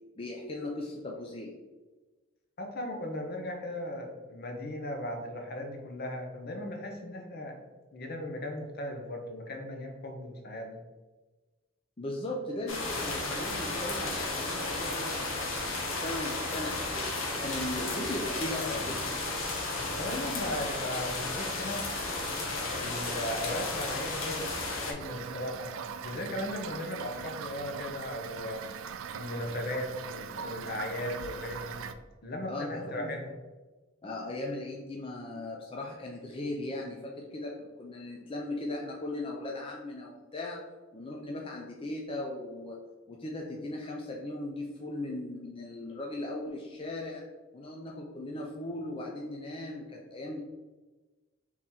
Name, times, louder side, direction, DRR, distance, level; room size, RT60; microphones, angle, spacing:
voice 1, 0.1-1.5 12.0-17.1 17.4-19.0 32.5-33.1 34.0-40.6 40.9-42.8 43.1-47.2 47.5-50.4, left 1 dB, 25° left, -2 dB, 0.5 m, -38 dB
voice 2, 2.6-7.6 7.9-10.8 20.0-21.9 22.6-24.6 24.8-25.7 26.0-28.6 29.2-31.8 32.2-33.3, left 1 dB, 50° left, 2 dB, 0.8 m, -37 dB
sound 1, 12.7-24.9, left 2 dB, 80° left, 0.9 m, -33 dB
Toilet flush / Fill (with liquid), 25.0-31.9, right 7 dB, 80° right, 0.3 m, -41 dB
3.7 x 3.0 x 4.1 m, 1.2 s
head